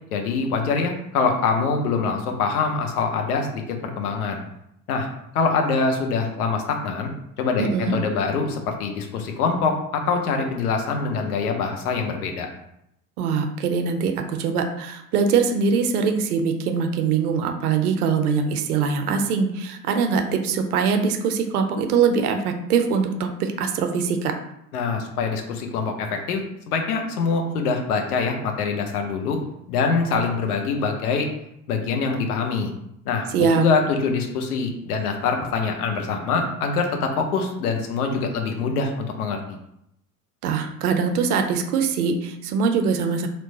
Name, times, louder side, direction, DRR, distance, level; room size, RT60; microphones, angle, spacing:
voice 1, 0.1-4.4 4.9-5.1 5.3-7.1 7.4-12.5 24.7-26.4 26.7-29.4 29.7-31.3 31.7-32.7 33.1-39.4, left 4 dB, 70° left, 3 dB, 0.8 m, -24 dB
voice 2, 7.6-8.0 13.2-24.3 33.3-33.7 40.4-43.3, right 5 dB, 70° right, 5 dB, 0.7 m, -22 dB
3.0 x 2.1 x 4.0 m, 0.78 s
hypercardioid pair, 80°, 46 cm